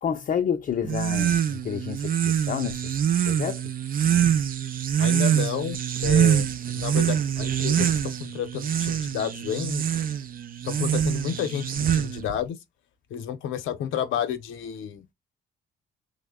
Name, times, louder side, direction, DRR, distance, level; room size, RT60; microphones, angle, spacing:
voice 1, 0.0-2.9 3.3-3.7, left 8 dB, 45° left, 0.5 m, -29 dB
sound 1, 0.8-12.4, right 9 dB, 45° right, 0.4 m, -25 dB
voice 2, 5.0-9.9 10.6-12.6 13.1-15.0, left 9 dB, 85° left, 0.7 m, -31 dB
3.3 x 2.1 x 3.5 m
cardioid pair, 90°, 20 cm